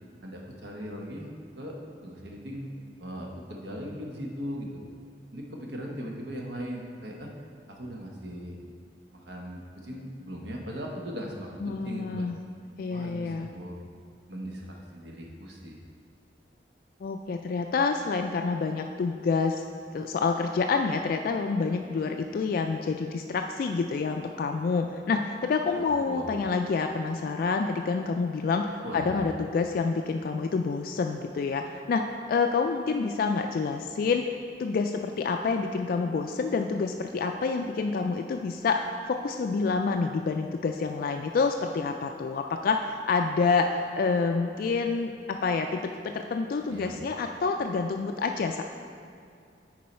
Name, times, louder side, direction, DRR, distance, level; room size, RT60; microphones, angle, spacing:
voice 1, 0.2-1.3 1.6-1.8 2.0-2.7 3.0-4.8 5.3-7.3 7.7-8.6 9.1-12.3 12.9-13.8 14.3-15.8 26.0-26.3 28.8-29.3 46.7-47.0, equal, 80° right, -1 dB, 1.1 m, -38 dB
voice 2, 11.6-12.4 12.8-13.5 17.0-19.6 19.9-34.2 34.6-48.6, left 4 dB, 50° left, 5 dB, 0.3 m, -28 dB
9.4 x 4.6 x 4.3 m, 2.3 s
head